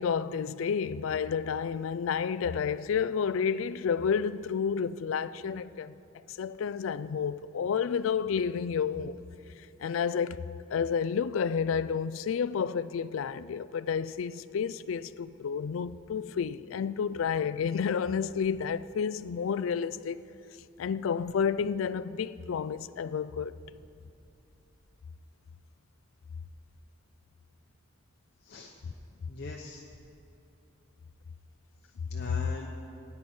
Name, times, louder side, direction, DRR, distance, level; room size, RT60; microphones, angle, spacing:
voice 1, 0.0-6.0 6.3-9.2 9.8-10.4 10.7-20.2 20.8-23.6, left 6 dB, 80° left, 0.4 m, -30 dB
voice 2, 28.4-28.9 29.3-29.8 31.8-32.7, left 2 dB, 55° left, 0.8 m, -43 dB
18.0 x 9.8 x 4.4 m
head